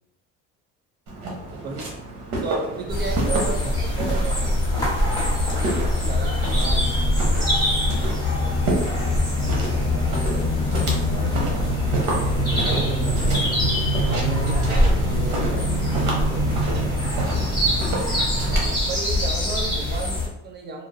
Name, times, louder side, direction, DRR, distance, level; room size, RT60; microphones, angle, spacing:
Walk footsteps, 1.1-18.8, right 3 dB, 80° right, 1.0 m, -30 dB
voice 1, 1.5-1.9 2.4-4.6 5.5-7.2 18.6-20.9, right 4 dB, 35° right, 1 dB, 0.7 m, -33 dB
sound 1, 2.9-20.3, left 1 dB, 15° left, 1.4 m, -23 dB
voice 2, 8.4-10.5 11.1-11.6 12.3-15.7 16.1-16.5, left 1 dB, 10° right, -10 dB, 1.1 m, -37 dB
2.8 x 2.4 x 2.7 m, 0.88 s
cardioid pair, 120°, 30 cm